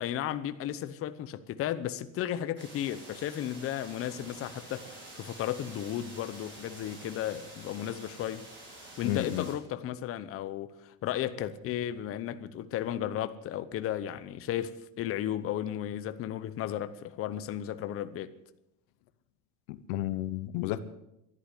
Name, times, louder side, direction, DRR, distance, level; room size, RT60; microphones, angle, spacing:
voice 1, 0.0-8.5 9.0-18.3, left 11 dB, 35° left, 0.9 m, -34 dB
sound 1, 2.6-9.5, right 2 dB, 30° right, 5.5 m, -48 dB
voice 2, 9.0-9.5 19.7-20.8, left 14 dB, 80° left, 1.2 m, -32 dB
13.5 x 11.5 x 8.3 m
cardioid pair, 155°, 37 cm